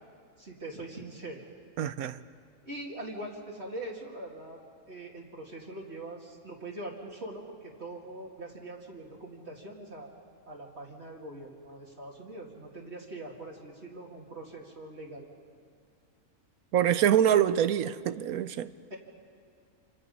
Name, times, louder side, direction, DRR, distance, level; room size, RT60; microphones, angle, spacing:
voice 1, 0.4-1.4 2.6-4.6 4.9-10.1 10.5-15.3 18.9-19.0, right 2 dB, 50° right, 2.6 m, -42 dB
voice 2, 1.8-2.2 16.7-18.7, right 10 dB, 85° right, 1.2 m, -25 dB
27.5 x 26.5 x 5.5 m
omnidirectional pair, 1.5 m